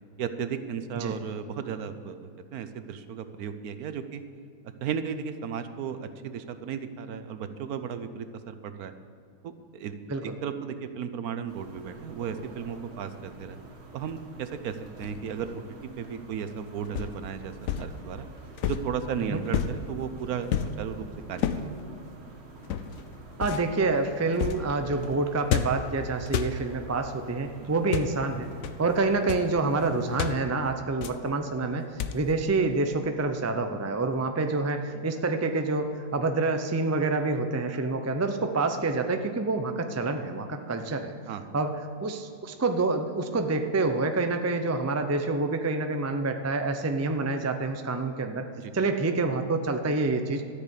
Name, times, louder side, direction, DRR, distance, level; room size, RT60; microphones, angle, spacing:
voice 1, 0.2-4.2 4.8-8.9 9.4-13.6 13.9-15.6 16.0-18.3 18.6-21.8 27.6-27.7 41.3-41.4 48.6-48.7, right 7 dB, 75° right, 10 dB, 1.2 m, -35 dB
sound 1, 11.5-30.4, right 3 dB, 45° right, 1.5 m, -47 dB
sound 2, 15.0-15.4 16.9-17.2 17.6-17.9 18.6-19.0 19.5-19.8 20.5-20.8 21.4-21.7 22.6-23.0 23.4-23.7 24.3-24.7 25.5-25.9 26.3-26.6 27.8-28.2 28.6-28.8 29.1-29.5 30.2-30.4 31.0-31.3 32.0-32.3, left 9 dB, 70° left, 1.0 m, -30 dB
voice 2, 23.4-28.5 28.8-31.9 32.1-41.1 41.5-48.5 48.7-50.4, right 3 dB, 25° right, 6 dB, 0.3 m, -27 dB
13.5 x 6.6 x 8.4 m, 2.5 s
omnidirectional pair, 1.6 m